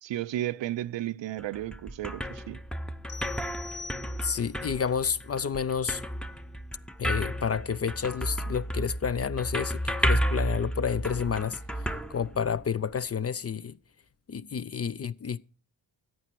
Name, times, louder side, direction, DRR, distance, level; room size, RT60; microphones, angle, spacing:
voice 1, 0.0-2.6, right 13 dB, 65° right, 0.6 m, -33 dB
sound 1, 1.4-12.9, equal, ahead, 0.7 m, -32 dB
sound 2, 3.1-4.6, left 4 dB, 60° left, 1.2 m, -44 dB
voice 2, 4.2-6.0 7.0-13.8 14.3-15.4, left 7 dB, 30° left, 0.5 m, -30 dB
14.0 x 8.9 x 4.6 m
cardioid pair, 75°, 47 cm